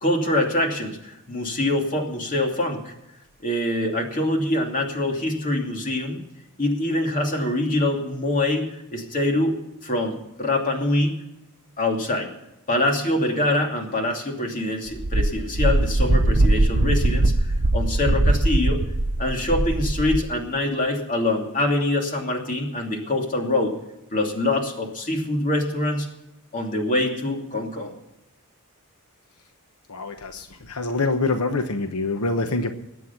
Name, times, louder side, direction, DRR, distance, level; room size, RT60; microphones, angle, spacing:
voice 1, 0.0-2.9 3.4-6.2 6.6-8.7 8.9-11.1 11.8-12.3 12.7-17.3 17.7-18.8 19.2-23.7 24.1-26.1 26.5-27.9, left 1 dB, 35° left, 2 dB, 2.8 m, -24 dB
Wind, 15.0-20.3, right 1 dB, 55° right, 0.9 m, -21 dB
voice 2, 29.9-32.7, left 3 dB, 85° left, 7 dB, 1.1 m, -25 dB
21.0 x 8.5 x 5.9 m, 0.90 s
head